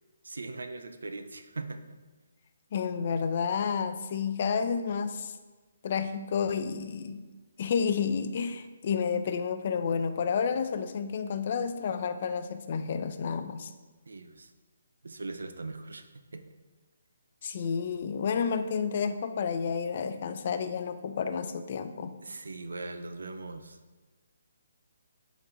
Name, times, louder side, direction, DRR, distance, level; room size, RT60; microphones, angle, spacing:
voice 1, 0.2-2.0 14.1-14.5 15.0-16.1 16.3-16.5 22.2-23.8, right 3 dB, 80° right, 8 dB, 0.4 m, -40 dB
voice 2, 2.7-5.3 5.8-7.3 7.6-13.7 17.4-22.1, left 6 dB, 50° left, 10 dB, 0.3 m, -30 dB
3.9 x 2.5 x 4.3 m, 1.3 s
hypercardioid pair, 150°, 0 cm